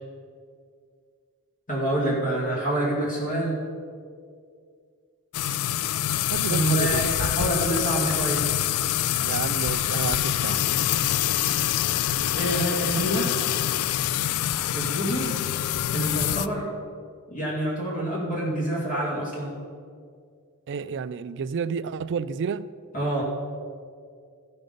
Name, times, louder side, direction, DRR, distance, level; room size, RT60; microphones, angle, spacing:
voice 1, 1.7-3.6 6.4-8.5 12.3-13.3 14.7-15.4 15.9-16.7 17.3-19.5 22.9-23.2, right 1 dB, 40° left, -6 dB, 2.3 m, -27 dB
sound 1, 5.3-16.5, left 11 dB, 75° left, 0.3 m, -25 dB
voice 2, 6.3-7.0 9.2-10.6 20.7-22.7, right 6 dB, 55° right, 14 dB, 0.4 m, -30 dB
15.5 x 5.4 x 5.3 m, 2.2 s
head